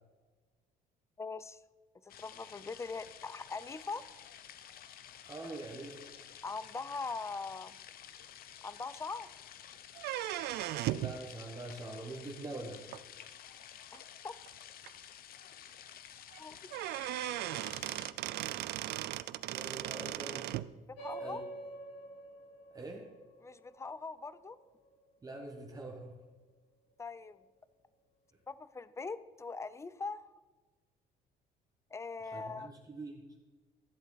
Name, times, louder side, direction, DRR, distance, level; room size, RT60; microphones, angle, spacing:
voice 1, 1.2-1.6 2.0-4.0 6.4-7.8 8.6-9.3 13.9-14.3 16.4-16.6 20.9-21.4 23.4-24.6 27.0-27.4 28.5-30.2 31.9-32.7, left 4 dB, 15° left, 16 dB, 0.5 m, -41 dB
sound 1, 2.1-18.1, left 10 dB, 60° left, 0.7 m, -52 dB
voice 2, 5.2-6.1 10.9-12.9 19.5-20.5 21.2-21.4 22.7-23.1 25.2-26.2 32.2-33.2, right 2 dB, 20° right, 1 dB, 1.3 m, -44 dB
sound 2, 10.0-11.2 12.9-13.0 13.9-14.0 14.5-14.6 14.9-15.0 16.3-16.4 16.7-20.7, right 15 dB, 75° right, 0.4 m, -37 dB
sound 3, 21.0-25.9, right 2 dB, 85° left, 3.3 m, -48 dB
13.0 x 7.9 x 4.0 m, 1.3 s
cardioid pair, 110°, 17 cm